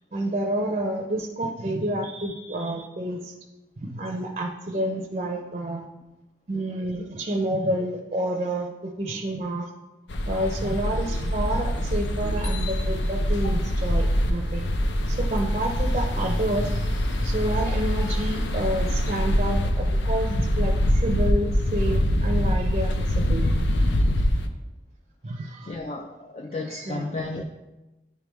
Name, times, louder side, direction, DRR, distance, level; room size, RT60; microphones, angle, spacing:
voice 1, 0.1-3.3 3.8-5.9 6.5-9.7 10.3-14.7 15.0-23.4 25.2-25.7 26.8-27.1, right 1 dB, 35° right, 1 dB, 0.5 m, -29 dB
sound 1, 10.1-24.5, equal, 90° left, 0.5 m, -24 dB
voice 2, 25.6-27.4, left 2 dB, 35° left, 3 dB, 0.3 m, -33 dB
9.3 x 3.4 x 3.0 m, 1.0 s
head